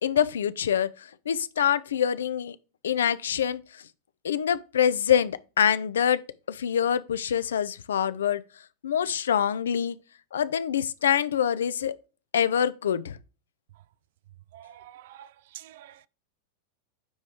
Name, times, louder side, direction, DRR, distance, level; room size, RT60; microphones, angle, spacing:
voice 1, 0.0-2.6 2.8-3.8 4.2-6.2 6.5-8.4 8.8-10.0 10.3-11.9 12.3-13.2, left 9 dB, 65° left, 0.4 m, -25 dB
voice 2, 14.5-16.1, right 12 dB, 55° right, 0.3 m, -48 dB
9.3 x 3.1 x 3.5 m
figure-of-eight pair, 90°, 0 cm